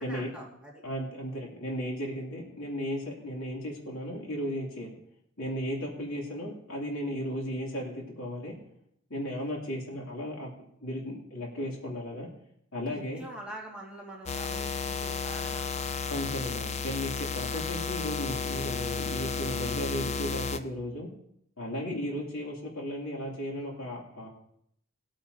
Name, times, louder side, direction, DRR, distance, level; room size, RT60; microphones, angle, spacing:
voice 1, 0.0-0.7 9.4-9.6 12.9-15.8 16.1-16.3 17.5-17.6, right 1 dB, 5° right, -4 dB, 2.1 m, -45 dB
voice 2, 0.8-4.9 5.4-8.5 9.1-10.5 10.8-12.3 12.7-13.2 16.1-21.1 21.6-24.3, equal, 70° left, -1 dB, 2.9 m, -35 dB
sound 1, 14.3-20.6, left 5 dB, 30° left, 0.6 m, -33 dB
20.0 x 8.8 x 2.8 m, 0.70 s
head